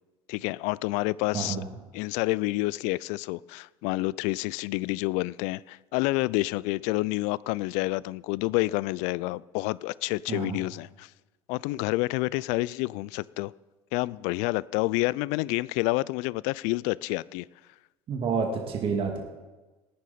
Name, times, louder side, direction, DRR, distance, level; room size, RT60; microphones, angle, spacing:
voice 1, 0.3-1.6 1.9-11.1 11.5-13.5 13.9-17.5, left 21 dB, 70° left, 0.4 m, -28 dB
voice 2, 1.3-1.7 10.3-10.6 18.1-19.2, right 5 dB, 45° right, 2.1 m, -29 dB
18.5 x 9.8 x 4.3 m
hypercardioid pair, 75°, 13 cm